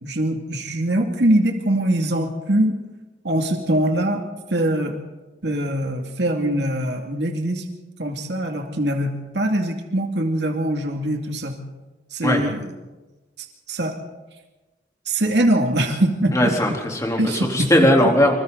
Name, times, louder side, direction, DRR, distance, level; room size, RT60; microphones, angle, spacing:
voice 1, 0.0-2.8 3.2-4.2 4.5-5.0 5.4-7.6 8.0-11.6 12.1-12.7 13.7-13.9 15.1-16.5 17.2-17.7 18.0-18.1, right 1 dB, 70° right, 2 dB, 2.5 m, -22 dB
voice 2, 16.3-18.3, left 1 dB, 20° left, 0 dB, 3.6 m, -18 dB
26.5 x 25.5 x 4.1 m, 1.2 s
head